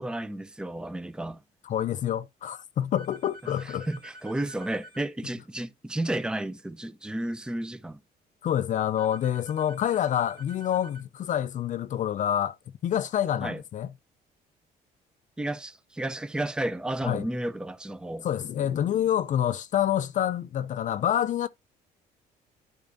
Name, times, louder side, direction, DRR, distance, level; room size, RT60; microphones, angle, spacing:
voice 1, 0.0-1.4 3.6-8.0 13.4-13.6 15.4-18.3, right 1 dB, 5° right, 0.5 m, -32 dB
voice 2, 1.7-3.9 8.4-12.6 12.8-13.9 17.0-17.3 18.2-21.5, left 10 dB, 50° left, 0.5 m, -27 dB
sound 1, 3.0-5.0 9.0-11.0, equal, 70° right, 3.3 m, -48 dB
11.5 x 4.8 x 2.6 m
cardioid pair, 110°, 17 cm